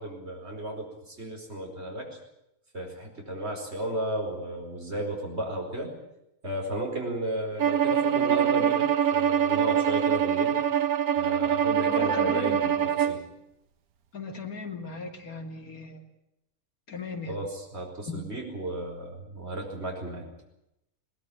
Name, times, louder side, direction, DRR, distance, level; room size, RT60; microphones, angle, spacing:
voice 1, 0.0-2.2 2.7-6.0 6.4-10.6 11.2-12.8 13.1-13.2 17.3-20.3, right 1 dB, 45° right, 1 dB, 5.1 m, -34 dB
Bowed string instrument, 7.6-13.2, right 9 dB, 85° right, 1.5 m, -24 dB
voice 2, 11.9-13.3 14.1-16.0 16.9-17.3 18.1-18.2, left 4 dB, 80° left, 4 dB, 3.0 m, -38 dB
21.0 x 19.5 x 8.7 m, 0.83 s
omnidirectional pair, 1.5 m